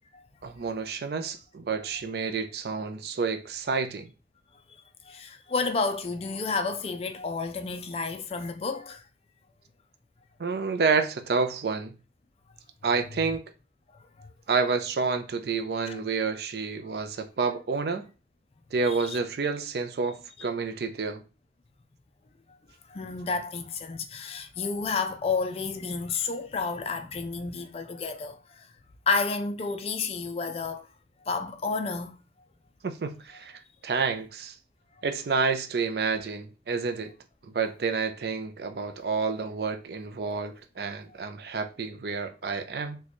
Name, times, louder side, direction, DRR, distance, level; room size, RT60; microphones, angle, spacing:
voice 1, 0.4-4.1 10.4-12.0 12.8-13.4 14.5-18.1 18.7-21.2 32.8-34.5 35.0-37.1 37.5-43.0, right 4 dB, 60° right, 0.4 m, -29 dB
voice 2, 5.1-9.0 14.2-14.3 15.9-16.0 18.8-19.2 22.9-28.6 29.1-30.8 31.3-32.1, left 4 dB, 35° left, 0.3 m, -31 dB
3.0 x 2.2 x 4.0 m
head